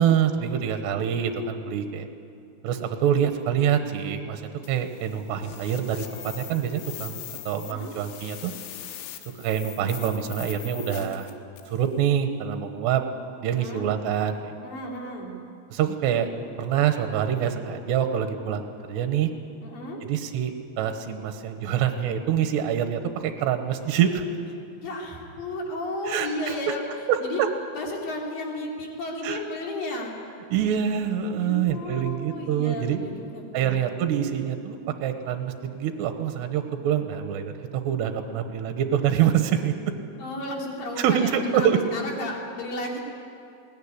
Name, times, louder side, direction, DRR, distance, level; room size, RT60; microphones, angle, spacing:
voice 1, 0.0-2.1 2.6-4.4 4.7-8.5 9.4-11.3 11.7-13.0 13.4-14.6 15.7-16.3 16.6-19.3 20.0-24.2 26.1-26.8 27.1-27.5 29.2-29.4 30.5-33.0 33.5-39.7 41.0-41.8, right 9 dB, 70° right, 7 dB, 2.9 m, -25 dB
sound 1, 4.6-11.8, left 12 dB, 80° left, 3.6 m, -41 dB
voice 2, 13.5-13.9 14.6-15.3 19.6-20.0 24.8-26.9 27.2-27.4 27.7-30.2 31.4-34.0 40.2-43.0, left 1 dB, 50° left, -1 dB, 4.4 m, -33 dB
21.0 x 18.5 x 9.9 m, 2.6 s
omnidirectional pair, 5.7 m